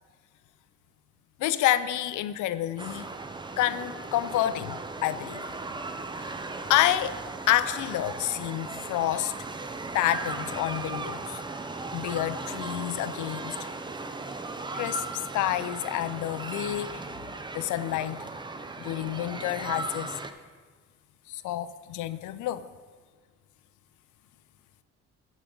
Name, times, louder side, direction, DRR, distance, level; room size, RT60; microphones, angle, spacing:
voice 1, 1.4-3.1 3.6-5.5 6.2-6.4 6.7-7.1 7.5-9.3 9.9-11.4 11.9-13.6 14.7-15.0 15.3-16.9 17.5-18.2 18.8-20.1 21.3-22.6, left 13 dB, 80° left, 14 dB, 0.5 m, -28 dB
sound 1, 2.8-20.3, right 3 dB, 15° right, 0.5 m, -37 dB
13.0 x 5.2 x 3.8 m, 1.5 s
cardioid pair, 90°, 30 cm